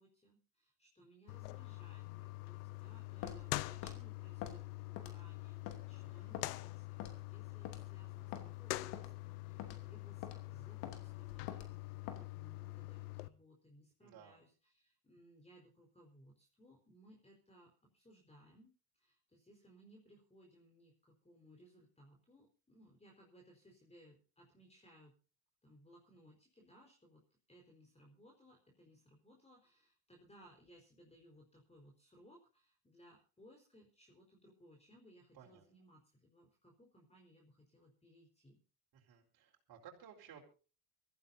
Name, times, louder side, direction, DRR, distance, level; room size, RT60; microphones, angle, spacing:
voice 1, 0.0-25.1 25.6-27.2 27.5-38.6, equal, 15° left, 1 dB, 4.7 m, -64 dB
sound 1, 1.3-13.3, left 20 dB, 85° left, 0.8 m, -45 dB
Walk footsteps, 3.2-3.4 3.8-4.0 4.4-4.6 5.0-5.3 5.7-5.8 6.3-6.5 7.0-7.2 7.6-7.8 8.3-8.5 8.9-9.1 9.6-9.8 10.2-10.4 10.8-11.0 11.5-11.7 12.1-12.2, left 10 dB, 65° left, 2.9 m, -45 dB
voice 2, 6.0-6.3 14.0-14.4 35.3-35.7 38.9-40.4, right 8 dB, 50° right, -1 dB, 4.7 m, -58 dB
24.5 x 15.0 x 2.8 m, 0.35 s
supercardioid pair, 80°, 45 cm